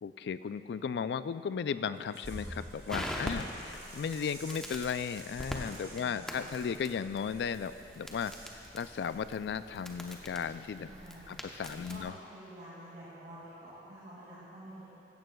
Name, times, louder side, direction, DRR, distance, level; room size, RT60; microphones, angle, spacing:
voice 1, 0.0-10.9 11.3-12.2, left 6 dB, 65° left, 13 dB, 0.3 m, -36 dB
sound 1, 1.9-8.5 8.8-9.1, right 2 dB, 20° right, 2.4 m, -53 dB
Crackle, 2.2-12.1, equal, 5° left, 0.8 m, -43 dB
voice 2, 3.2-3.6 5.9-6.4 10.9-14.8, right 1 dB, 50° right, -10 dB, 2.4 m, -49 dB
15.5 x 14.0 x 2.3 m, 2.8 s
head